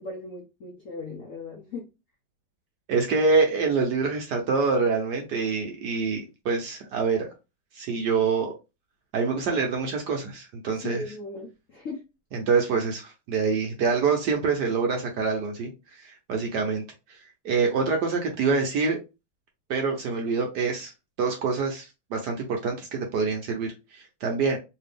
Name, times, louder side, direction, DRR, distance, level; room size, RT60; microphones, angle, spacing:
voice 1, 0.0-1.9 10.7-12.0, left 3 dB, 60° left, -1 dB, 0.8 m, -38 dB
voice 2, 2.9-7.3 7.7-8.5 9.1-11.0 12.3-16.8 17.1-19.0 19.7-20.9 21.2-24.6, right 4 dB, 70° right, 2 dB, 1.0 m, -26 dB
3.3 x 2.7 x 3.3 m, 0.27 s
omnidirectional pair, 2.3 m